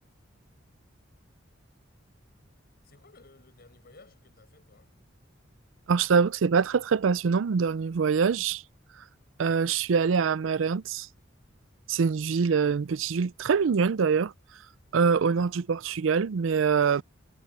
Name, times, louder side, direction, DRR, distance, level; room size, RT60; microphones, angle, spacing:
voice 1, 2.8-4.9, left 3 dB, 50° left, 5.5 m, -56 dB
voice 2, 5.9-8.6 9.4-11.1 11.9-14.3 14.9-17.0, right 5 dB, 75° right, 0.4 m, -24 dB
head